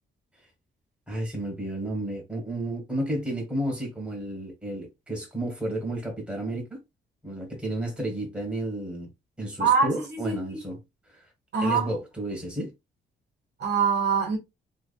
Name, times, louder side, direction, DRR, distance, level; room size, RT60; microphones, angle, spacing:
voice 1, 1.1-6.8 7.2-9.1 9.4-10.8 11.6-12.7, right 1 dB, 5° right, 1.8 m, -32 dB
voice 2, 9.6-10.6 11.5-11.9 13.6-14.4, right 5 dB, 60° right, 1.7 m, -24 dB
3.5 x 3.1 x 2.3 m
cardioid pair, 100°, 20 cm